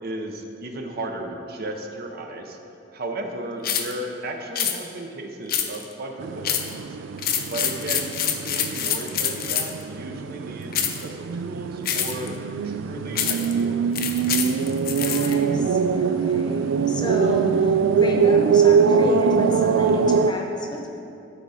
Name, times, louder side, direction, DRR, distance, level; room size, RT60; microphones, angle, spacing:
voice 1, 0.0-2.6 2.9-7.0 7.5-12.4 12.6-14.4, right 1 dB, 55° right, 3 dB, 0.7 m, -35 dB
sound 1, 3.6-3.9 4.6-4.8 5.5-5.9 6.4-6.7 7.2-9.8 10.7-11.0 11.9-12.3 13.2-13.5 14.0-15.3, left 9 dB, 50° left, 0.6 m, -26 dB
sound 2, 6.2-20.3, right 6 dB, 90° right, 0.3 m, -23 dB
voice 2, 15.0-21.0, left 1 dB, 25° left, 1 dB, 0.9 m, -32 dB
12.0 x 4.9 x 4.1 m, 2.7 s
head